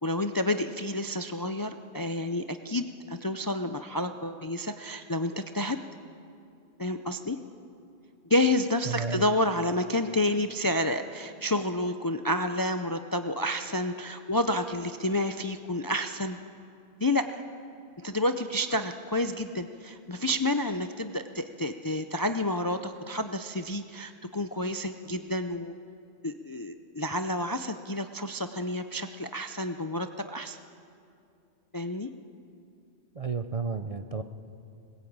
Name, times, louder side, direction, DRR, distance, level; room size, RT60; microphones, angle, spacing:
voice 1, 0.0-5.8 6.8-7.4 8.3-16.4 17.0-17.4 18.0-25.7 26.2-30.6 31.7-32.1, left 1 dB, 25° left, 8 dB, 0.5 m, -29 dB
voice 2, 8.9-9.2 33.1-34.2, right 4 dB, 35° right, 9 dB, 0.7 m, -32 dB
21.0 x 20.0 x 8.8 m, 2.6 s
omnidirectional pair, 1.1 m